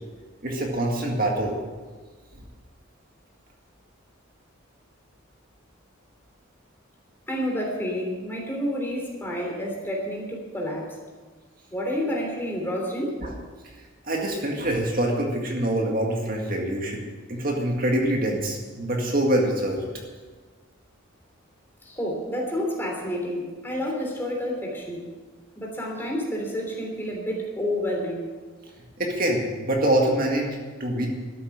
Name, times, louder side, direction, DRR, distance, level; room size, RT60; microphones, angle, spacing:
voice 1, 0.4-1.6 13.2-13.3 14.0-19.8 29.0-31.1, right 1 dB, 45° right, 0 dB, 2.0 m, -25 dB
voice 2, 7.3-11.0 11.7-13.2 21.8-25.0 25.6-28.3, equal, 10° left, -1 dB, 3.3 m, -29 dB
13.0 x 8.3 x 9.9 m, 1.4 s
head